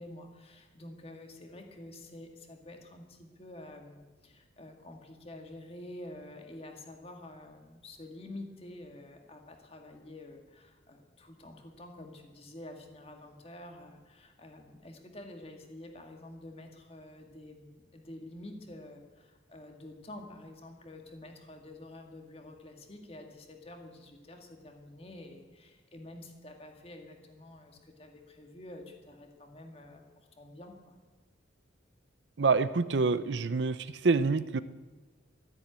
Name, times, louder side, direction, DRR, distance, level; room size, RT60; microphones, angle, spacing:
voice 1, 0.0-30.0 30.3-30.9, left 1 dB, 30° left, 3 dB, 1.8 m, -48 dB
voice 2, 32.4-33.8 34.0-34.6, right 4 dB, 65° right, 15 dB, 0.6 m, -26 dB
13.5 x 10.0 x 8.8 m, 1.3 s
head